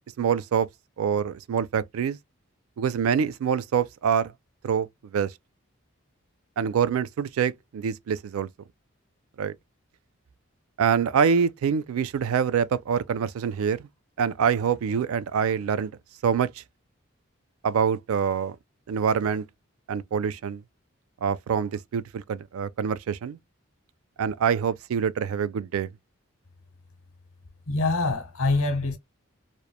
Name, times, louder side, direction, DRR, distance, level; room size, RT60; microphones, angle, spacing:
voice 1, 0.2-0.7 1.0-2.2 2.8-4.3 4.6-4.9 5.1-5.3 6.6-8.5 9.4-9.5 10.8-13.9 14.2-15.9 16.2-16.6 17.6-18.6 18.9-19.4 19.9-20.6 21.2-23.4 24.2-25.9, right 7 dB, 85° right, 0.3 m, -25 dB
voice 2, 27.7-29.0, left 3 dB, 85° left, 0.9 m, -25 dB
2.9 x 2.1 x 2.2 m
head